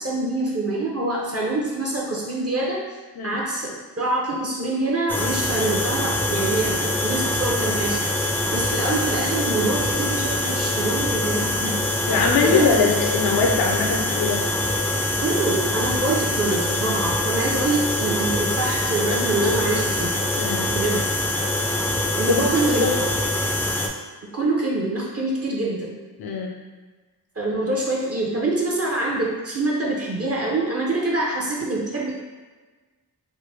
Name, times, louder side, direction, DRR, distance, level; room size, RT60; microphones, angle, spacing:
voice 1, 0.0-3.7 4.0-11.8 12.4-12.7 15.2-20.2 20.7-21.0 22.2-22.9 24.3-26.0 27.4-32.1, right 2 dB, 35° right, -3 dB, 0.7 m, -25 dB
sound 1, 5.1-23.9, left 1 dB, 5° left, 0.4 m, -24 dB
voice 2, 12.1-14.4 20.4-20.7 22.4-22.9 26.2-26.5, left 4 dB, 60° left, 0 dB, 0.5 m, -22 dB
3.2 x 2.1 x 3.3 m, 1.3 s
cardioid pair, 60°, 42 cm